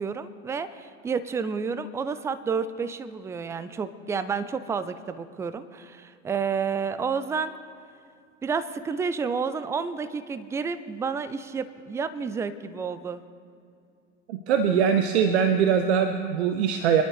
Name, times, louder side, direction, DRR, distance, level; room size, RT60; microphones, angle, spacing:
voice 1, 0.0-7.6 8.4-13.2, right 5 dB, 10° right, 13 dB, 0.4 m, -30 dB
voice 2, 14.3-17.0, right 7 dB, 60° right, 7 dB, 0.9 m, -22 dB
24.5 x 11.5 x 3.2 m, 2.4 s
figure-of-eight pair, 80°, 38 cm